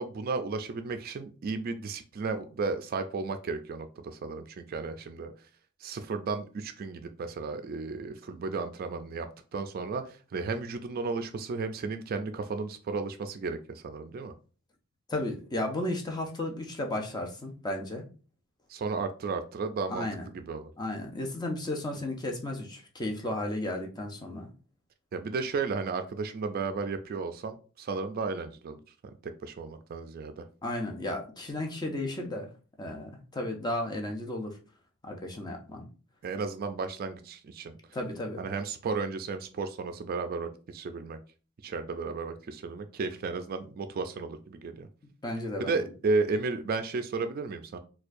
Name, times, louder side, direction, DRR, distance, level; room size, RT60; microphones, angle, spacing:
voice 1, 0.0-5.3 5.8-14.3 18.7-20.1 20.3-20.7 25.1-28.8 29.4-30.4 36.2-37.8 38.4-41.2 41.6-44.9 45.6-47.8, right 4 dB, 45° right, 8 dB, 0.3 m, -33 dB
voice 2, 15.1-18.1 19.9-20.3 20.8-24.5 30.6-32.5 32.8-34.6 35.0-35.9 37.9-38.4 45.2-45.8, left 1 dB, 20° left, 2 dB, 0.5 m, -34 dB
4.3 x 2.2 x 2.5 m, 0.37 s
head